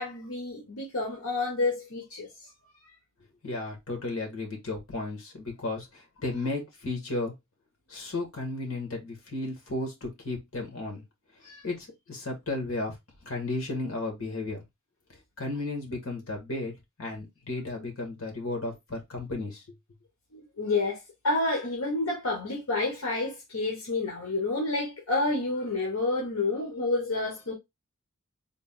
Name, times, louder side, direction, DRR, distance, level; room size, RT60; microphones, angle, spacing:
voice 1, 0.0-2.3 11.4-11.6 20.3-27.5, left 2 dB, 90° left, 1.0 m, -29 dB
voice 2, 3.4-7.3 7.9-11.0 11.6-13.0 13.2-14.6 15.4-16.7 17.0-19.8, left 2 dB, 70° left, 1.7 m, -34 dB
3.8 x 2.4 x 3.7 m
head